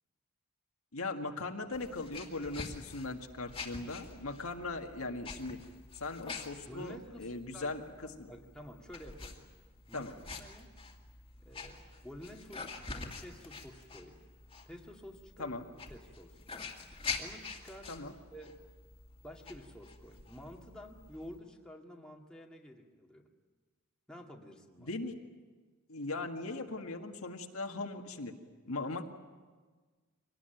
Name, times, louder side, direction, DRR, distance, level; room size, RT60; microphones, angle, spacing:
voice 1, 0.9-5.6 6.0-8.3 9.9-10.1 15.4-15.6 17.9-18.1 24.8-25.2 25.9-28.3 28.7-29.0, left 3 dB, 75° left, 3 dB, 1.8 m, -39 dB
sound 1, 1.7-21.4, left 4 dB, 25° left, 2.3 m, -47 dB
voice 2, 6.7-9.4 9.9-10.7 11.4-14.2 14.7-16.7 17.2-18.0 18.3-18.6 19.2-23.2 24.1-25.0, equal, 5° left, -1 dB, 2.1 m, -51 dB
24.5 x 19.0 x 9.1 m, 1.4 s
head